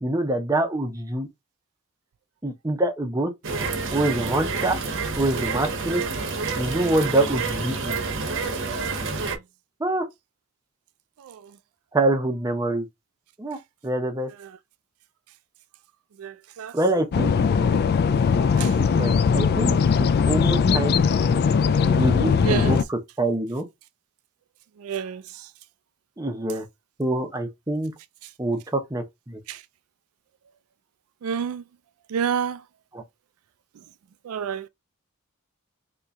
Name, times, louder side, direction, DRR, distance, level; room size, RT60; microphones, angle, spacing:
voice 1, 0.0-1.3 2.4-3.3 3.9-4.8 5.2-6.0 6.6-8.0 9.8-10.1 11.9-12.9 13.4-13.6 13.8-14.3 16.7-17.3 19.0-21.0 21.8-23.6 26.2-26.7 27.0-27.9 28.4-29.4 32.9-33.0, right 1 dB, 15° right, 0.7 m, -25 dB
sound 1, 3.4-9.4, right 4 dB, 65° right, 0.9 m, -28 dB
sound 2, 17.1-22.8, left 6 dB, 50° left, 0.3 m, -20 dB
voice 2, 24.8-25.2 31.2-31.6 32.1-32.6 34.3-34.7, right 7 dB, 85° right, 0.3 m, -27 dB
3.0 x 2.7 x 3.5 m
head